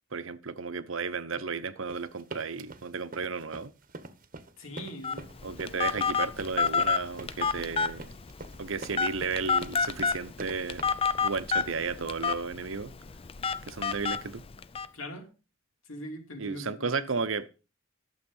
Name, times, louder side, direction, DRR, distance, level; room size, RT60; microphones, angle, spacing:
voice 1, 0.1-3.7 5.4-8.1 8.6-10.8 11.2-12.9 13.7-14.4 16.4-17.5, right 4 dB, 70° right, 0.9 m, -33 dB
sound 1, 1.9-10.8, right 3 dB, 40° right, 1.0 m, -44 dB
voice 2, 4.6-5.3 14.9-15.3 15.9-17.1, left 1 dB, 80° left, 2.7 m, -41 dB
Telephone, 5.0-14.9, left 5 dB, 25° left, 0.5 m, -30 dB
11.5 x 7.3 x 5.4 m
head